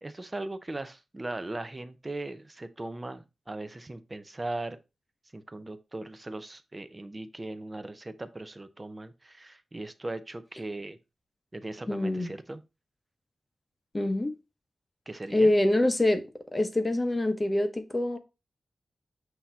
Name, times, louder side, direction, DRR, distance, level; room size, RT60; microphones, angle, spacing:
voice 1, 0.0-4.8 5.3-11.0 11.5-12.6 15.1-15.5, right 2 dB, 20° right, 0.6 m, -38 dB
voice 2, 11.9-12.3 13.9-14.3 15.3-16.2 16.5-18.2, left 1 dB, 20° left, 0.9 m, -25 dB
8.0 x 2.8 x 4.4 m
wide cardioid pair, 135°, 0 cm